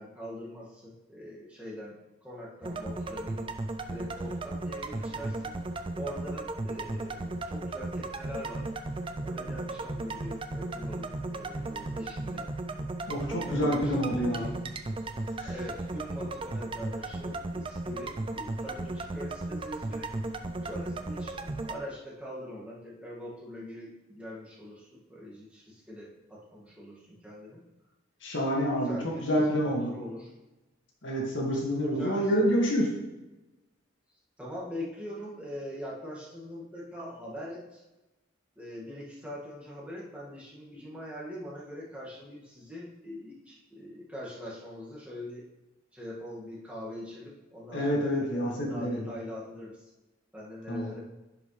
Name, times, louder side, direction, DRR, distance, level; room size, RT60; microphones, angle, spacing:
voice 1, 0.0-3.5 3.9-5.5 5.9-8.7 9.2-12.5 13.3-14.6 15.1-20.1 20.6-27.6 28.7-29.6 29.9-30.3 31.9-32.2 34.4-37.8 38.6-45.5 45.9-49.9 50.3-51.0, equal, 5° right, -7 dB, 1.9 m, -43 dB
sound 1, 2.6-21.8, right 2 dB, 25° right, 0.5 m, -35 dB
voice 2, 13.1-14.5 15.4-15.5 28.2-29.9 31.0-32.9 47.7-49.0 50.7-50.9, equal, 65° left, -2 dB, 2.0 m, -28 dB
10.5 x 5.5 x 3.3 m, 1.0 s
head